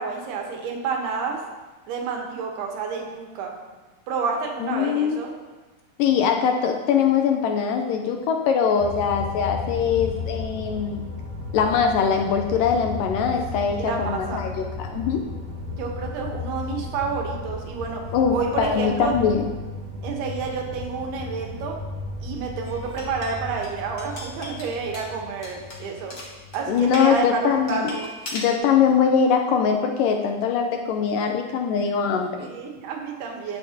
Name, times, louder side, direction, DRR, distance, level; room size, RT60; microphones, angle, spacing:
voice 1, 0.0-1.4 1.9-3.5 4.1-5.3 13.5-14.5 15.7-18.0 18.3-19.1 20.0-21.8 22.2-26.2 26.5-28.1 32.4-33.6, right 5 dB, 90° right, 1 dB, 3.2 m, -29 dB
voice 2, 4.6-5.2 6.0-11.0 11.5-15.2 18.1-19.5 26.7-27.9 28.3-32.5, left 7 dB, 85° left, 4 dB, 2.0 m, -22 dB
sound 1, 8.8-27.6, left 3 dB, 55° right, 2.1 m, -35 dB
sound 2, 22.6-27.1 27.7-28.6, left 2 dB, 45° left, 1.4 m, -39 dB
18.0 x 6.5 x 2.9 m, 1.2 s
omnidirectional pair, 4.4 m